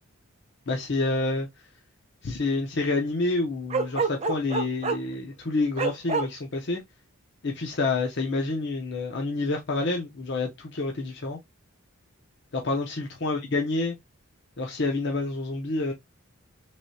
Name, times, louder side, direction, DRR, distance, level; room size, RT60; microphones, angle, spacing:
voice 1, 0.7-1.5 2.2-6.8 7.4-11.4 12.5-13.9 14.6-15.9, left 3 dB, 55° left, 0.7 m, -28 dB
Bark, 3.7-5.1 5.8-6.3, right 4 dB, 30° right, 0.5 m, -26 dB
3.3 x 3.1 x 2.7 m
head